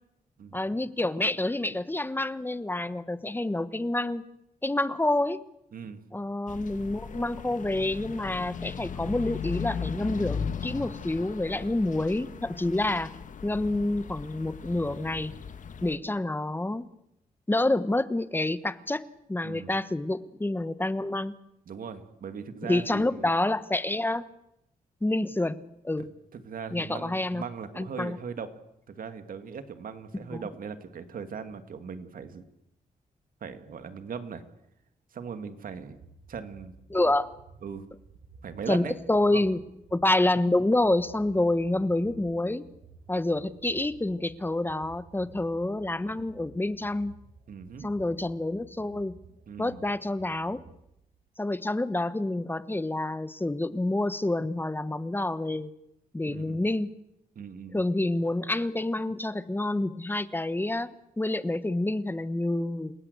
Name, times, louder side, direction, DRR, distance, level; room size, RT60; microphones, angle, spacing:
voice 1, 0.5-4.2 4.6-5.4 6.1-13.1 13.4-15.4 15.8-16.8 17.5-19.0 19.3-21.3 22.7-24.2 25.0-25.6 25.8-26.1 26.7-27.4 27.8-28.2 30.3-30.4 36.9-37.3 38.7-39.6 39.9-42.6 43.1-47.1 47.8-49.2 49.6-50.6 51.4-55.7 56.1-56.9 57.7-60.9 61.2-62.9, left 2 dB, 15° left, 14 dB, 1.2 m, -28 dB
voice 2, 5.7-6.0 19.4-19.8 21.7-23.3 26.0-26.1 26.3-28.5 28.9-32.4 33.4-34.4 35.1-36.0 36.3-36.7 37.1-37.2 37.6-37.9 38.4-38.9 39.3-39.4 47.5-47.9 49.5-49.8 56.3-56.6 57.4-57.8, right 6 dB, 70° right, 9 dB, 2.3 m, -39 dB
sound 1, 6.5-16.0, left 6 dB, 60° left, 1.5 m, -37 dB
sound 2, 35.6-51.3, right 4 dB, 85° right, 3.0 m, -54 dB
29.0 x 17.5 x 8.2 m, 0.83 s
cardioid pair, 90°, 15 cm